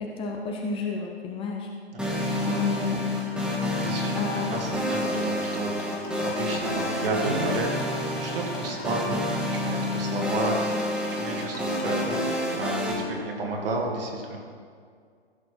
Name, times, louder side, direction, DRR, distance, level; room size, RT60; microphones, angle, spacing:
voice 1, 0.0-1.7 2.5-3.1 4.2-4.6 5.0-5.2, left 4 dB, 15° left, 0 dB, 0.8 m, -31 dB
sound 1, 2.0-12.9, left 1 dB, 5° right, 1.7 m, -28 dB
voice 2, 3.4-14.4, right 2 dB, 55° right, 0 dB, 2.3 m, -32 dB
sound 2, 5.1-12.0, left 4 dB, 35° left, 1.4 m, -43 dB
15.5 x 6.4 x 4.5 m, 2.1 s
figure-of-eight pair, 120°, 33 cm